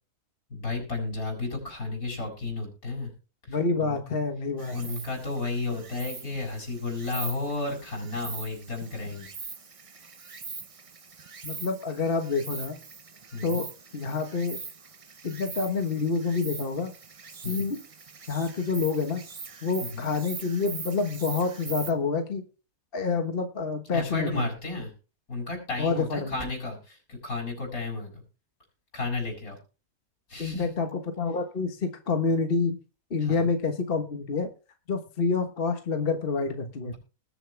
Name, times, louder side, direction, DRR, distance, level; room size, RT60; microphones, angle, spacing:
voice 1, 0.5-3.1 3.4-4.0 4.7-9.3 13.3-13.6 17.4-17.7 19.8-20.1 23.9-24.9 25.3-28.2 28.9-29.6 30.3-30.7 33.2-33.6 36.8-37.0, left 3 dB, 80° left, 0 dB, 7.4 m, -33 dB
voice 2, 3.5-5.0 11.4-12.8 13.4-13.7 13.9-14.6 15.2-16.9 17.4-17.8 18.3-19.2 19.6-22.4 22.9-24.5 25.8-26.3 30.4-32.8 33.1-34.5 34.9-36.9, left 4 dB, 40° left, 5 dB, 1.5 m, -28 dB
Insect, 4.6-21.9, right 5 dB, 35° right, 0.6 m, -42 dB
20.5 x 7.8 x 3.4 m, 0.34 s
omnidirectional pair, 1.5 m